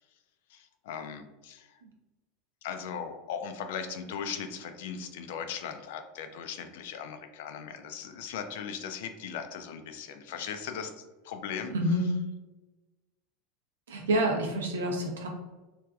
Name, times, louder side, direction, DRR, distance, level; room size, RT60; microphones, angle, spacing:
voice 1, 0.5-1.8 2.6-11.7, left 7 dB, 70° left, 7 dB, 0.4 m, -38 dB
voice 2, 11.7-12.1 13.9-15.3, right 1 dB, 90° right, 1 dB, 0.6 m, -27 dB
3.2 x 2.5 x 2.3 m, 1.1 s
hypercardioid pair, 95°, 0 cm